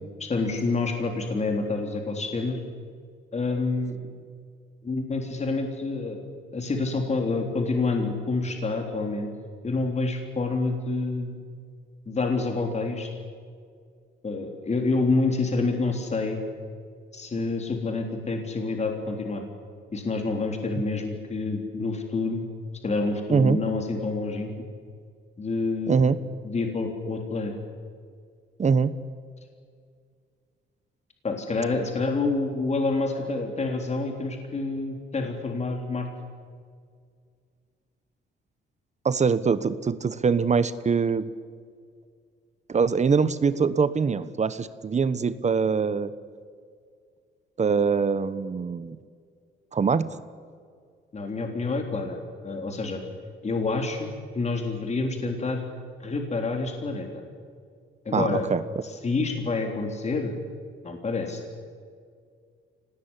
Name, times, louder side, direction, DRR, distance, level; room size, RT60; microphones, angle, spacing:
voice 1, 0.2-2.6 3.3-4.0 4.8-6.3 6.5-9.3 9.6-11.4 12.1-13.1 14.2-16.4 17.1-19.4 19.9-22.5 22.8-24.5 25.4-26.1 26.4-27.5 31.2-36.1 51.1-53.0 53.4-54.1 54.3-55.6 56.0-57.2 58.1-58.5 58.8-60.3 60.8-61.4, left 3 dB, 35° left, 3 dB, 3.7 m, -28 dB
voice 2, 28.6-28.9 39.0-41.3 42.7-46.1 47.6-49.0 49.7-50.1 58.1-58.6, right 5 dB, 35° right, 14 dB, 1.1 m, -23 dB
25.0 x 19.5 x 9.9 m, 2.1 s
cardioid pair, 90°, 20 cm